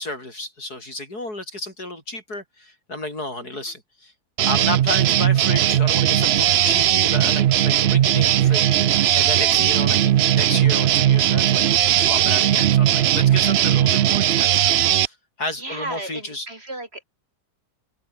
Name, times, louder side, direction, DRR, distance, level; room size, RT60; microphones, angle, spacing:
voice 1, 0.0-4.1 4.4-11.6 12.0-14.6 14.9-16.5, left 2 dB, 65° left, 8.5 m, -32 dB
sound 1, 4.4-15.1, right 11 dB, 90° right, 0.5 m, -18 dB
sound 2, 6.3-13.8, equal, 5° right, 6.4 m, -46 dB
sound 3, 9.2-14.6, right 3 dB, 65° right, 4.0 m, -41 dB
voice 2, 15.5-17.0, right 2 dB, 35° right, 3.0 m, -34 dB
omnidirectional pair, 1.8 m